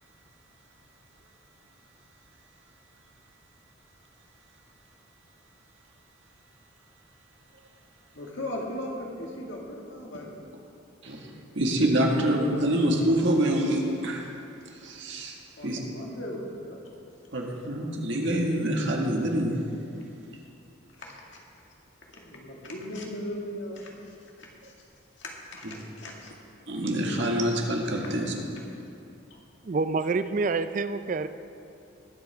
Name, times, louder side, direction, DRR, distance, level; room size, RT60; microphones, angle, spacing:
voice 1, 8.1-10.3 12.9-13.0 15.6-16.8 21.0-21.1 22.1-24.7 25.2-26.4 28.0-28.2, left 1 dB, 65° left, -2 dB, 1.9 m, -38 dB
voice 2, 11.5-14.3 14.8-15.4 15.6-15.8 17.3-17.4 18.1-19.5 25.6-25.7 26.7-28.3, right 1 dB, 65° right, 0 dB, 1.7 m, -25 dB
voice 3, 29.6-31.3, right 4 dB, 40° right, 11 dB, 0.4 m, -27 dB
21.0 x 8.0 x 3.5 m, 2.6 s
head